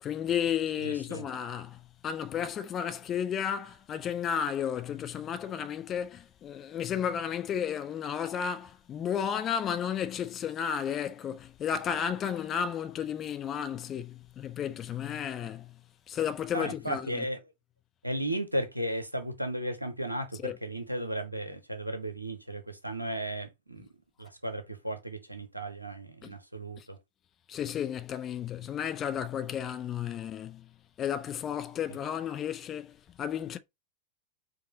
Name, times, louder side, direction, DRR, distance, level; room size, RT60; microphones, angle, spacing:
voice 1, 0.0-15.8 16.1-17.3 20.4-20.6 26.2-26.3 26.8-26.9 27.5-30.7 31.0-33.6, left 8 dB, 30° left, 0.5 m, -33 dB
voice 2, 0.8-1.2 16.5-17.4 18.0-23.9 24.2-27.0, right 1 dB, 85° right, 0.8 m, -35 dB
4.7 x 2.7 x 2.7 m
figure-of-eight pair, 90°, 0 cm